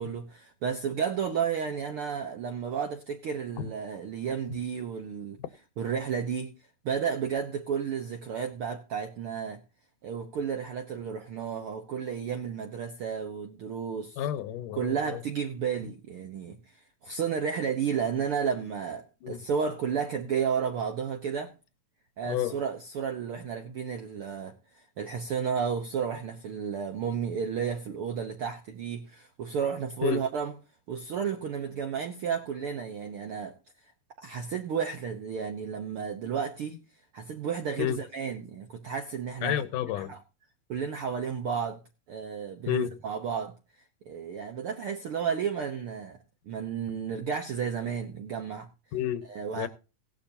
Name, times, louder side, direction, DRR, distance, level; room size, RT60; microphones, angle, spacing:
voice 1, 0.0-5.4 5.8-6.5 6.8-9.6 10.0-14.2 14.8-16.8 17.0-21.5 22.2-30.5 30.9-33.6 34.2-36.8 37.1-39.6 40.0-40.2 40.7-41.8 42.1-43.6 44.1-46.2 46.5-48.7 49.3-49.7, right 7 dB, 70° right, 1.3 m, -32 dB
voice 2, 14.2-15.2 19.2-19.4 22.3-22.5 30.0-30.2 37.8-38.0 39.4-40.1 42.7-43.0 48.9-49.3 49.6-49.7, left 11 dB, 80° left, 2.4 m, -30 dB
17.0 x 11.5 x 2.8 m
omnidirectional pair, 3.8 m